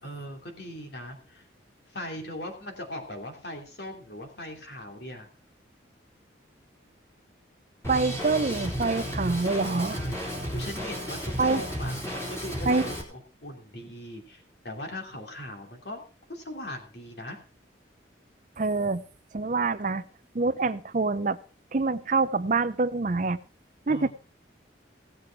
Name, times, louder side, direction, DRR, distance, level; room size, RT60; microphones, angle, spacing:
voice 1, 0.0-1.4 1.9-5.3 9.9-16.0 16.3-17.4 23.9-24.1, left 1 dB, 60° left, 3 dB, 3.0 m, -40 dB
Drum kit, 7.8-13.0, equal, 15° left, 3.5 m, -33 dB
voice 2, 7.9-10.0 11.4-11.6 12.7-12.9 18.6-19.0 19.3-20.0 20.3-21.4 21.7-23.4 23.9-24.1, right 3 dB, 40° right, 13 dB, 0.6 m, -26 dB
17.0 x 7.8 x 4.6 m, 0.37 s
head